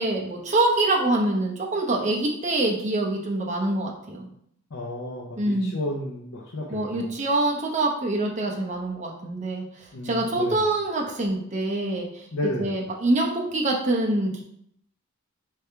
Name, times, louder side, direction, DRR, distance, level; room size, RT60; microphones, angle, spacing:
voice 1, 0.0-4.3 5.4-5.8 6.7-12.3 12.6-14.4, right 2 dB, 30° right, -1 dB, 0.7 m, -25 dB
voice 2, 4.7-7.1 9.9-10.6 12.3-12.8, left 1 dB, 65° left, -2 dB, 0.6 m, -32 dB
3.4 x 3.4 x 4.4 m, 0.71 s
head